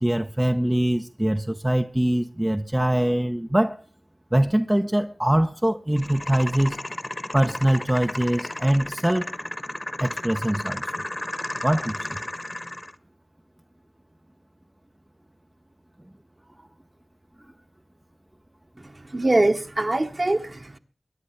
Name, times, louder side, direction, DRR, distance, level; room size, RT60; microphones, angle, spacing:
voice 1, 0.0-3.8 4.3-6.8 7.3-9.3 10.0-11.0 11.6-12.2 16.6-16.7, right 1 dB, 15° right, 0.8 m, -23 dB
sound 1, 6.0-13.0, left 1 dB, 30° left, 1.3 m, -33 dB
voice 2, 18.9-20.8, right 2 dB, 40° right, 1.5 m, -23 dB
23.0 x 9.9 x 4.5 m
wide cardioid pair, 65°, 0 cm